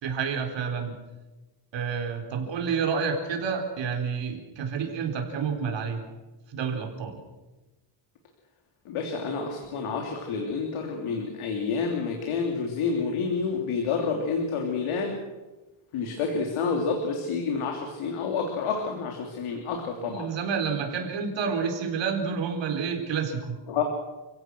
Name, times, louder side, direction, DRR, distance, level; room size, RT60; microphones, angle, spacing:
voice 1, 0.0-0.9 1.7-6.0 6.5-7.2 19.9-23.6, right 6 dB, 60° right, 3 dB, 4.3 m, -29 dB
voice 2, 8.8-15.2 15.9-20.3 23.7-23.8, left 5 dB, 90° left, 2 dB, 3.4 m, -29 dB
29.0 x 16.5 x 6.3 m, 1.1 s
cardioid pair, 150°, 48 cm